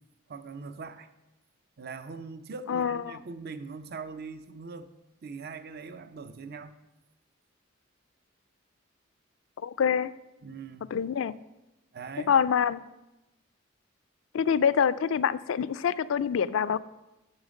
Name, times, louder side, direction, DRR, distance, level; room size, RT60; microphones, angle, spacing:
voice 1, 0.3-1.1 1.8-4.9 5.2-6.8 10.4-10.9 11.9-12.4, right 4 dB, 55° right, 11 dB, 0.6 m, -41 dB
voice 2, 2.7-3.2 9.6-10.1 10.9-11.3 12.3-12.8 14.3-16.8, left 7 dB, 85° left, 16 dB, 0.4 m, -25 dB
7.3 x 7.1 x 6.3 m, 0.97 s
head